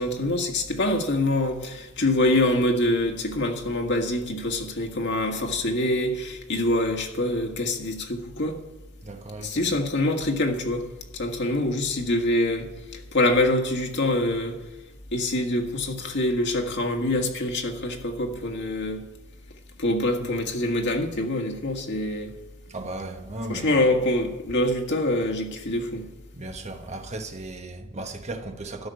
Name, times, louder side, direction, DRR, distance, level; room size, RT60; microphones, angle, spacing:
voice 1, 0.0-8.6 9.4-10.9 11.1-14.6 15.1-19.0 19.8-22.3 23.5-26.1, left 1 dB, 60° left, 1.8 m, -25 dB
voice 2, 9.0-9.8 20.2-20.3 22.7-23.8 26.3-28.9, right 2 dB, 35° right, 1.1 m, -36 dB
13.0 x 6.4 x 9.3 m
head